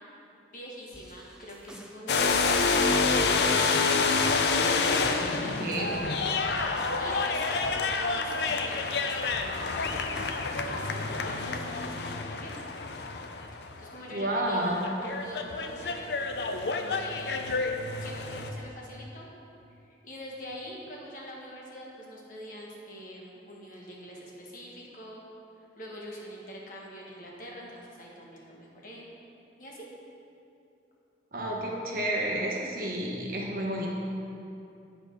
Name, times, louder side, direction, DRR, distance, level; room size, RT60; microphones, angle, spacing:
voice 1, 0.5-2.9 5.0-10.0 10.4-12.5 13.5-16.1 16.7-17.6 18.0-19.3 19.7-25.2 25.8-29.1 29.6-29.9, equal, 45° left, -3 dB, 1.3 m, -44 dB
sound 1, 0.9-2.0 2.3-3.7 4.0-5.4 5.7-8.8 9.1-10.4 10.8-10.9, equal, 5° right, 0.4 m, -47 dB
sound 2, 2.1-13.9 14.8-18.5, left 4 dB, 65° left, 0.5 m, -28 dB
voice 2, 5.6-5.9 14.1-14.8 31.3-33.9, right 1 dB, 50° right, -2 dB, 1.1 m, -30 dB
8.3 x 5.0 x 5.2 m, 2.7 s
head